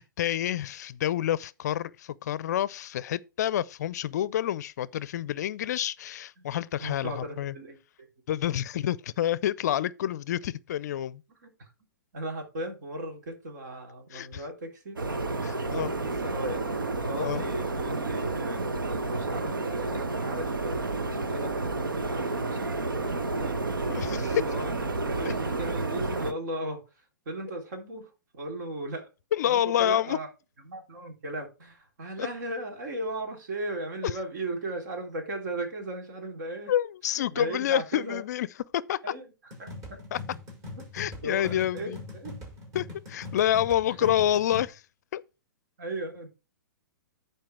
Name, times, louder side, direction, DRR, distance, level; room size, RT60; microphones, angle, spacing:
voice 1, 0.0-7.5 8.3-11.2 14.1-14.4 15.4-15.9 17.2-17.4 23.9-24.3 25.2-25.3 29.3-30.2 32.2-32.3 36.7-38.5 38.7-39.0 40.1-40.2 40.9-42.0 42.7-44.8 45.1-45.2, left 11 dB, 55° left, 0.5 m, -28 dB
voice 2, 6.8-8.1 11.3-11.7 12.1-15.0 15.7-16.7 17.1-18.6 19.1-21.6 22.1-23.6 24.0-24.7 25.1-29.1 29.5-30.3 30.6-36.7 37.1-38.2 39.0-40.0 41.2-42.4 43.9-44.1 45.8-46.3, right 1 dB, 60° right, 3.4 m, -37 dB
sound 1, 15.0-26.3, right 3 dB, 85° right, 1.1 m, -30 dB
sound 2, 39.5-44.7, left 3 dB, 30° right, 6.3 m, -41 dB
10.5 x 4.6 x 4.7 m
figure-of-eight pair, 115°, 11 cm